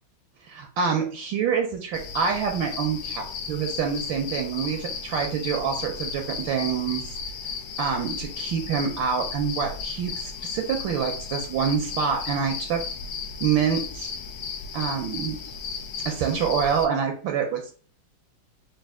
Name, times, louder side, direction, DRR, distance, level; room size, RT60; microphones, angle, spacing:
voice 1, 0.5-7.0 7.8-12.8 13.4-14.1 14.7-15.4 16.0-17.7, right 7 dB, 75° right, 3 dB, 1.3 m, -26 dB
sound 1, 1.9-16.9, left 5 dB, 80° left, 1.4 m, -35 dB
4.2 x 2.4 x 3.5 m, 0.41 s
omnidirectional pair, 2.3 m